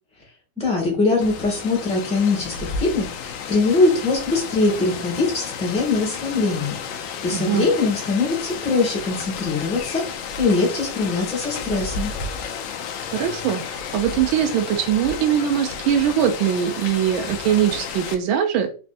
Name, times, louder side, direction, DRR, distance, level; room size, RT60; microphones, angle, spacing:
voice 1, 0.6-12.1, left 3 dB, 5° left, -2 dB, 1.2 m, -22 dB
Rain, 1.2-18.2, left 6 dB, 80° left, 1.3 m, -32 dB
voice 2, 7.3-7.7 13.1-18.7, right 9 dB, 90° right, 5 dB, 1.4 m, -21 dB
4.1 x 3.3 x 2.6 m, 0.37 s
omnidirectional pair, 2.1 m